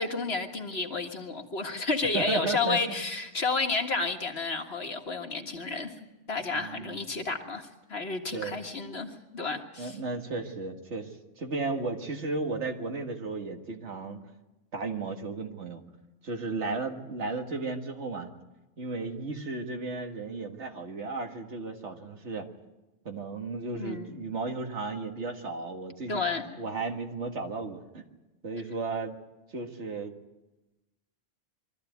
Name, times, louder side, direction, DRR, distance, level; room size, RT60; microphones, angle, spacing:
voice 1, 0.0-5.9 6.3-10.0 23.8-24.2 26.1-26.4, left 3 dB, 60° left, 4 dB, 2.1 m, -31 dB
voice 2, 2.1-3.0 6.5-7.0 8.3-8.6 9.8-14.2 14.7-15.8 16.2-18.3 18.8-22.5 23.1-26.2 26.6-28.1 28.4-29.1 29.5-30.1, right 3 dB, 70° right, 4 dB, 2.1 m, -34 dB
23.0 x 14.0 x 9.3 m, 1.0 s
omnidirectional pair, 1.2 m